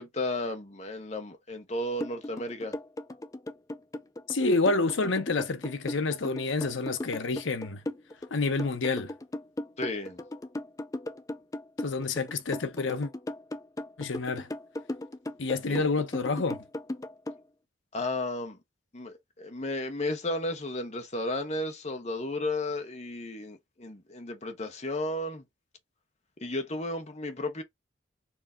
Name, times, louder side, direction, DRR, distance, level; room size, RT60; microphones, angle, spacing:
voice 1, 0.0-2.7 9.8-10.2 15.7-15.8 17.9-18.6 18.9-25.4 26.4-27.6, left 1 dB, 35° left, 1.0 m, -33 dB
sound 1, 2.0-17.4, left 1 dB, 15° left, 0.4 m, -36 dB
voice 2, 4.3-7.8 8.3-9.1 11.8-13.1 14.0-14.5 15.4-16.6, left 3 dB, 70° left, 0.7 m, -28 dB
4.6 x 2.8 x 3.6 m
head